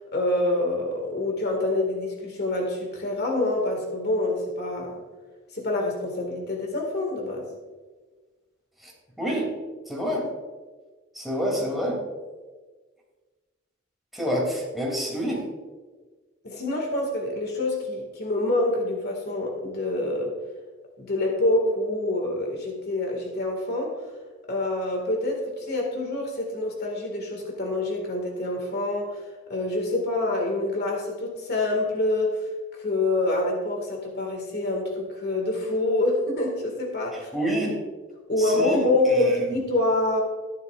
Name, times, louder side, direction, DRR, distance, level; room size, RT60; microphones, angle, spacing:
voice 1, 0.1-5.0 5.5-7.5 16.4-20.3 21.0-24.0 24.5-29.2 29.5-32.5 32.8-37.3 38.3-40.2, left 2 dB, 55° left, 1 dB, 2.0 m, -26 dB
voice 2, 9.2-9.5 9.9-10.3 11.1-12.0 14.1-15.4 37.1-37.8 38.4-39.6, equal, ahead, -3 dB, 2.8 m, -28 dB
13.5 x 11.0 x 2.5 m, 1.3 s
head